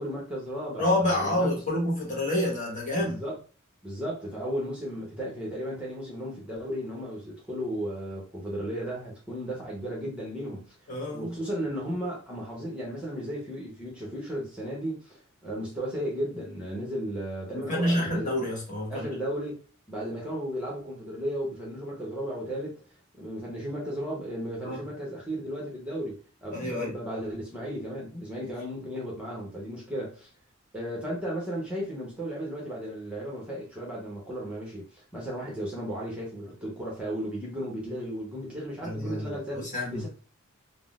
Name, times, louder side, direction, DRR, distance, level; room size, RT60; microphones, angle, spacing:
voice 1, 0.0-1.5 2.9-3.4 3.8-10.6 11.1-18.3 18.9-19.6 19.9-22.8 23.2-30.3 30.7-40.1, equal, 5° right, 0.8 m, -35 dB
voice 2, 0.8-3.2 10.9-11.3 17.5-19.1 24.6-24.8 26.5-26.9 38.8-39.3 39.7-40.0, left 1 dB, 40° left, 1.3 m, -28 dB
3.6 x 2.0 x 2.4 m
head